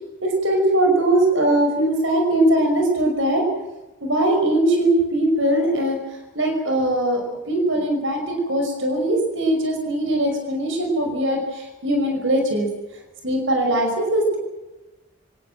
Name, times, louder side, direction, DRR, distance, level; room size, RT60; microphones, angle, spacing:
voice 1, 0.2-3.4 4.0-6.0 6.3-12.7 13.2-14.4, right 1 dB, 75° right, 3 dB, 5.5 m, -20 dB
26.5 x 18.0 x 7.5 m, 1.1 s
head